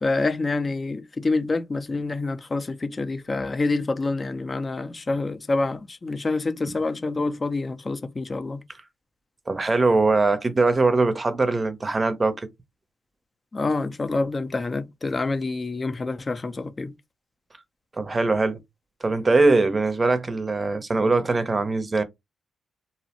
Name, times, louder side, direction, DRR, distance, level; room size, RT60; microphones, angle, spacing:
voice 1, 0.0-8.6 13.5-16.9, left 3 dB, 35° left, 0.5 m, -27 dB
voice 2, 9.5-12.5 17.9-18.6 19.0-22.0, right 3 dB, 35° right, 0.6 m, -21 dB
2.7 x 2.0 x 2.8 m
supercardioid pair, 50°, 0 cm